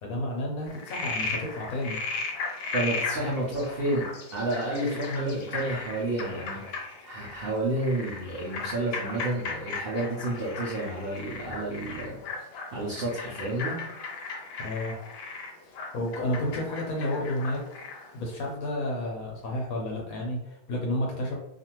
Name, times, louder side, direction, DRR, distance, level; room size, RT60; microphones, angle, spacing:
voice 1, 0.0-2.0 14.6-14.9 15.7-17.6 18.1-21.3, left 1 dB, 65° left, -1 dB, 1.0 m, -31 dB
Frog, 0.7-18.1, left 4 dB, 85° left, 1.3 m, -36 dB
voice 2, 2.7-4.0 4.3-6.6 7.0-12.2 12.7-13.8, right 1 dB, 85° right, -5 dB, 0.5 m, -30 dB
2.7 x 2.4 x 2.8 m, 0.86 s
omnidirectional pair, 1.8 m